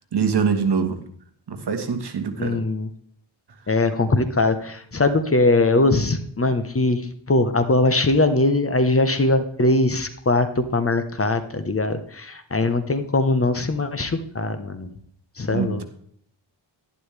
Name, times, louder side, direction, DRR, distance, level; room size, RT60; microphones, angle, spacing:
voice 1, 0.1-1.0 1.5-2.6 15.5-15.8, right 6 dB, 55° right, 7 dB, 1.6 m, -23 dB
voice 2, 2.4-2.9 3.7-7.0 7.3-14.9 15.4-15.8, left 2 dB, 30° left, 9 dB, 1.1 m, -21 dB
11.5 x 11.5 x 3.4 m, 0.63 s
wide cardioid pair, 110°, 47 cm